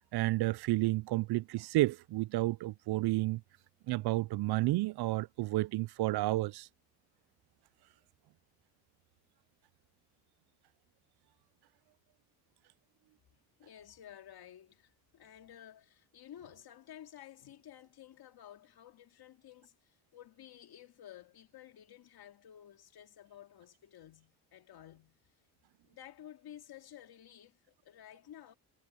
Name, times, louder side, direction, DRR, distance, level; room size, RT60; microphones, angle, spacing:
voice 1, 0.1-3.4 3.9-6.7, right 18 dB, 65° right, 0.5 m, -31 dB
voice 2, 13.6-25.3 25.8-28.5, left 11 dB, 65° left, 2.4 m, -53 dB
cardioid pair, 105°, 41 cm